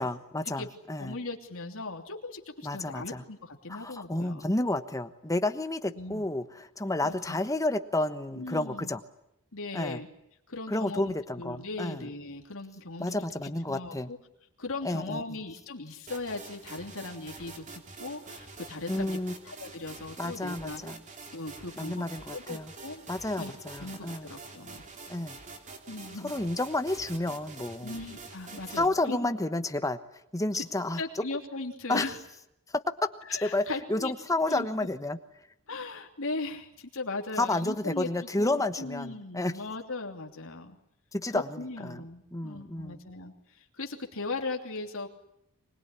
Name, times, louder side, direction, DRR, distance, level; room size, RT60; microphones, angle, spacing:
voice 1, 0.0-1.2 2.6-3.2 3.7-9.0 9.7-10.0 10.7-12.1 13.0-14.1 14.8-15.4 18.9-19.3 20.2-21.0 21.8-22.7 23.1-24.3 25.1-25.4 26.2-28.0 28.8-30.0 30.3-31.2 31.9-32.0 32.7-32.8 33.4-35.2 37.4-39.5 41.1-42.0 42.3-43.0, left 2 dB, 15° left, 10 dB, 1.1 m, -31 dB
voice 2, 1.0-4.4 6.0-6.2 7.0-7.4 8.3-8.9 9.5-10.1 10.5-13.2 13.4-14.2 14.6-19.2 19.4-20.8 21.3-22.0 22.3-23.0 23.4-23.5 23.8-24.8 25.9-26.3 27.8-29.3 30.5-30.6 31.0-32.2 33.3-34.1 34.5-34.7 35.7-40.8 41.3-45.1, left 3 dB, 65° left, 3 dB, 3.2 m, -38 dB
sound 1, 16.1-28.9, right 3 dB, 35° right, 3.2 m, -46 dB
24.5 x 21.0 x 10.0 m, 0.78 s
head